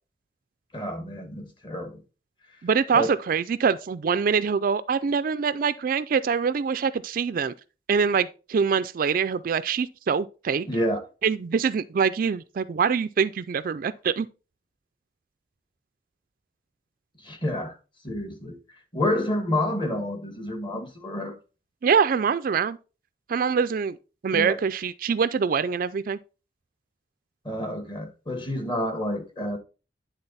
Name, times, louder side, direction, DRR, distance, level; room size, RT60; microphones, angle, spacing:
voice 1, 0.7-2.0 2.9-3.1 10.7-11.0 17.2-17.7 18.0-18.6 18.9-21.3 24.3-24.6 27.4-29.6, left 1 dB, 25° left, 1.5 m, -29 dB
voice 2, 2.6-7.5 7.9-10.7 11.2-14.3 21.8-22.8 23.3-24.0 24.2-26.2, right 6 dB, 50° right, 0.4 m, -24 dB
9.8 x 3.8 x 4.1 m
head